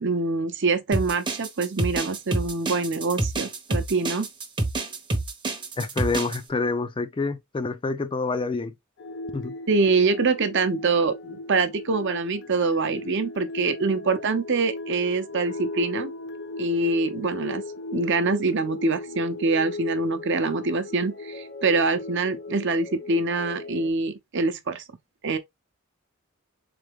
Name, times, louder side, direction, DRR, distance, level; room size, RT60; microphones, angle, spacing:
voice 1, 0.0-4.3 9.7-16.1 16.6-17.6 17.9-24.8 25.2-25.4, right 3 dB, 55° right, 0.7 m, -25 dB
sound 1, 0.9-6.4, right 2 dB, 20° right, 0.7 m, -27 dB
voice 2, 5.8-8.7 9.3-9.5, left 3 dB, 25° left, 0.4 m, -27 dB
sound 2, 9.0-23.9, left 2 dB, 55° left, 0.7 m, -37 dB
3.8 x 3.4 x 3.4 m
head